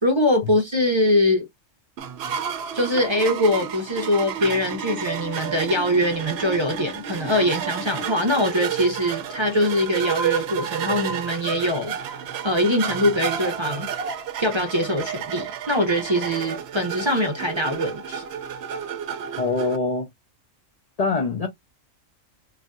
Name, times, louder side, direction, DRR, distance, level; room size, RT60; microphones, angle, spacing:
voice 1, 0.0-1.5 2.7-12.1 12.4-13.9 14.4-18.2, left 1 dB, 30° right, 0.5 m, -23 dB
sound 1, 2.0-19.8, right 8 dB, 65° right, 0.7 m, -31 dB
voice 2, 19.4-20.1 21.0-21.5, left 3 dB, 65° left, 0.3 m, -23 dB
3.2 x 2.6 x 2.2 m
omnidirectional pair, 1.3 m